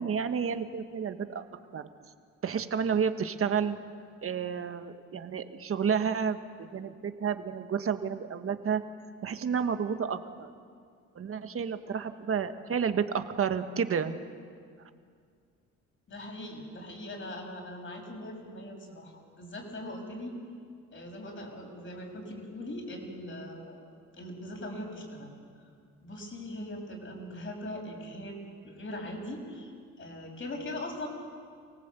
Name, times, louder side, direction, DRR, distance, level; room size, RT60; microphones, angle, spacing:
voice 1, 0.0-1.4 1.7-1.9 2.4-3.8 4.2-8.8 9.2-10.5 11.1-14.1, right 7 dB, 45° right, 9 dB, 1.5 m, -30 dB
voice 2, 16.1-20.4 20.9-23.8 24.2-25.3 26.0-28.4 28.6-29.7 30.0-31.1, left 1 dB, 40° left, 2 dB, 6.4 m, -40 dB
28.0 x 18.5 x 8.4 m, 2.1 s
cardioid pair, 90°, 30 cm